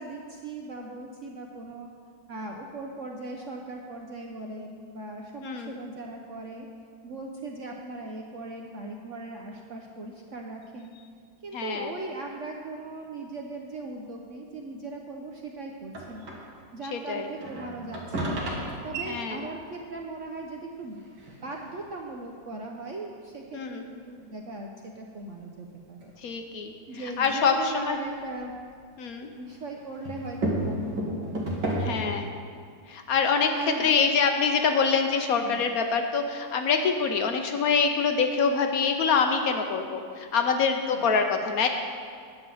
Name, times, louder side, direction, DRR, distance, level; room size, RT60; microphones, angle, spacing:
voice 1, 0.0-1.9 2.3-6.7 7.0-11.0 11.4-16.3 16.7-18.5 18.8-21.0 21.4-26.1 26.9-28.5 29.4-31.6 33.5-34.2 35.4-35.6 40.8-41.1, right 2 dB, 55° right, 1 dB, 0.9 m, -39 dB
voice 2, 5.4-5.8 11.5-11.9 16.9-17.3 19.1-19.4 23.5-23.8 26.2-28.0 29.0-29.3 31.8-32.3 32.9-41.7, left 5 dB, 60° left, 5 dB, 1.0 m, -25 dB
sound 1, 15.9-16.6 17.1-19.9 20.4-20.5 20.8-22.2 22.7-22.8 23.3-23.4 24.0-24.1 26.0-26.3 27.0-28.5 28.8-32.2, right 1 dB, 85° right, 2.5 m, -33 dB
10.0 x 6.2 x 7.7 m, 2.1 s
omnidirectional pair, 2.0 m